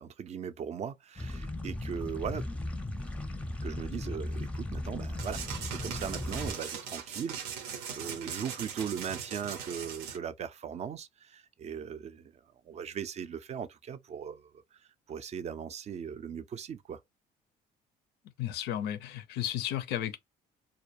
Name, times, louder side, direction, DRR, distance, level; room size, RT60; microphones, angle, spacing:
voice 1, 0.0-2.5 3.6-12.3 12.7-14.5 15.1-17.0, right 7 dB, 40° right, 0.4 m, -39 dB
sound 1, 1.2-6.5, left 1 dB, 5° left, 0.5 m, -37 dB
sound 2, 5.2-10.2, right 7 dB, 90° right, 0.6 m, -40 dB
voice 2, 18.4-20.2, left 11 dB, 80° left, 0.4 m, -33 dB
2.2 x 2.2 x 2.7 m
supercardioid pair, 85°, 17 cm